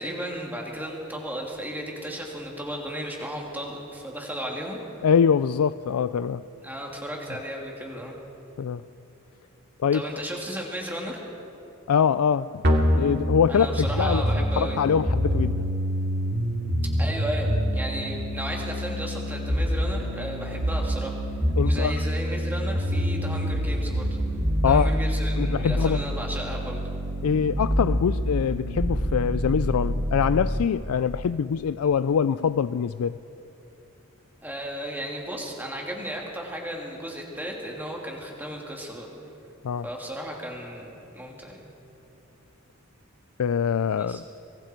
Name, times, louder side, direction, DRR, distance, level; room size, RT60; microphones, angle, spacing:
voice 1, 0.0-4.8 6.6-8.2 9.9-11.2 13.5-14.8 17.0-21.1 21.6-24.1 24.6-26.8 34.4-39.1 39.8-41.6 43.9-44.2, equal, 10° right, -1 dB, 2.8 m, -34 dB
voice 2, 5.0-6.4 8.6-8.8 9.8-10.2 11.9-12.6 13.0-14.2 14.6-15.7 21.6-21.9 24.6-24.9 25.4-26.0 27.2-33.2 39.6-39.9 43.4-44.2, left 7 dB, 85° left, 14 dB, 0.4 m, -24 dB
sound 1, 12.6-30.6, equal, 50° right, 2.5 m, -26 dB
25.5 x 23.0 x 4.5 m, 2.9 s
head